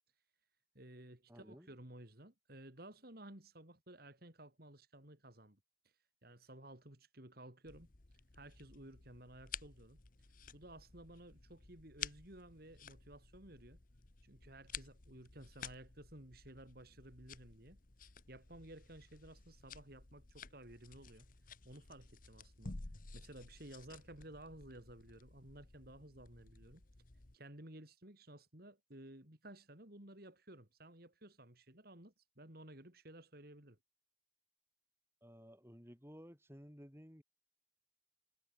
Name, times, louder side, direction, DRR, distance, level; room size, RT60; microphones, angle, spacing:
voice 1, 0.8-5.6 6.2-7.9 8.3-10.0 10.5-13.8 14.2-21.3 21.7-22.8 23.1-26.8 27.3-33.8, right 1 dB, 50° right, 3.6 m, -55 dB
voice 2, 1.3-1.7 35.2-37.2, equal, 10° right, 7.0 m, -56 dB
sound 1, 7.7-27.4, left 6 dB, 45° left, 1.2 m, -53 dB
head